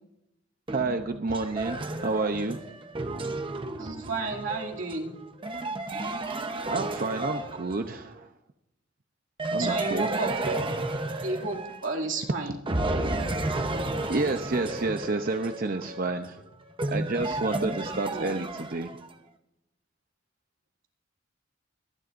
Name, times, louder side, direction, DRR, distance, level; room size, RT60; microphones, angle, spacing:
sound 1, 0.7-8.1 9.4-12.2 12.7-19.1, right 2 dB, 25° right, 0.9 m, -33 dB
voice 1, 0.7-2.6 6.3-8.3 9.5-10.1 14.1-16.4 16.9-18.9, right 3 dB, 50° right, 7 dB, 0.7 m, -30 dB
voice 2, 3.8-5.2 9.5-10.6 11.2-12.5 18.1-18.3, right 3 dB, 85° right, -1 dB, 2.6 m, -32 dB
23.5 x 10.5 x 2.6 m, 0.84 s
head